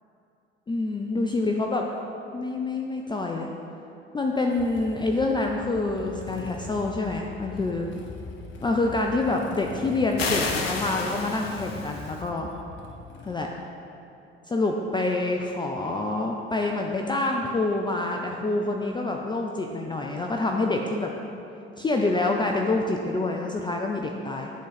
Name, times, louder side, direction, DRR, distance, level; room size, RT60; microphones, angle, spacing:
voice 1, 0.7-1.9 2.3-3.5 4.1-7.9 8.6-12.5 13.3-13.5 14.5-21.1 21.8-24.5, left 2 dB, 15° left, 1 dB, 0.5 m, -27 dB
Motorcycle / Engine starting, 4.5-13.3, left 4 dB, 40° left, 0.8 m, -42 dB
sound 1, 10.2-12.2, left 4 dB, 85° left, 0.6 m, -30 dB
11.5 x 3.9 x 4.1 m, 2.8 s
figure-of-eight pair, 60°, 29 cm